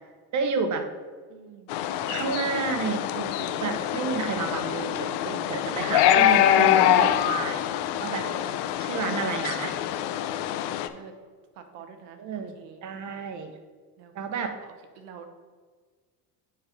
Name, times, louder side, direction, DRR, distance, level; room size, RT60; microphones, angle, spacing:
voice 1, 0.3-0.9 2.1-7.6 8.0-8.3 8.8-9.8 12.2-13.5 14.1-14.6, right 5 dB, 40° right, 7 dB, 1.0 m, -31 dB
voice 2, 1.3-1.7 5.5-5.9 6.5-7.4 8.1-8.5 8.9-9.6 10.9-11.1 11.5-12.2 12.5-12.8 14.0-15.3, right 7 dB, 85° right, 7 dB, 1.1 m, -44 dB
sound 1, 1.7-10.9, left 11 dB, 60° left, 0.6 m, -24 dB
6.8 x 4.6 x 5.2 m, 1.5 s
supercardioid pair, 90°, 46 cm